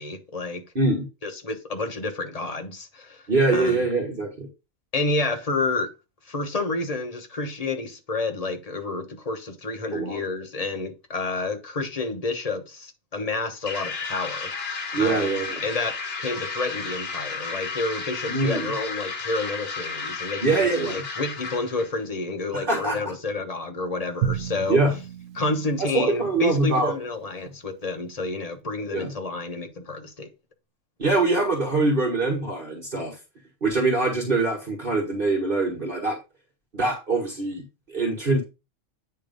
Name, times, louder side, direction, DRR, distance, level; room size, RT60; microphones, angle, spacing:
voice 1, 0.0-0.6 1.2-3.2 3.5-3.8 4.9-5.9 6.3-14.5 15.0-24.8 25.3-30.3, left 3 dB, 30° left, 1.1 m, -29 dB
voice 2, 0.7-1.1 3.3-4.5 9.9-10.2 14.9-15.6 18.3-18.7 20.4-21.0 22.5-23.0 24.7-24.9 25.9-26.9 28.9-29.1 31.0-33.2 33.6-36.2 36.7-38.4, right 3 dB, 45° right, 1.6 m, -23 dB
sound 1, 13.7-21.9, left 4 dB, 50° left, 1.4 m, -33 dB
Drum, 24.2-26.6, right 9 dB, 85° right, 1.1 m, -32 dB
8.9 x 3.4 x 5.1 m
omnidirectional pair, 1.3 m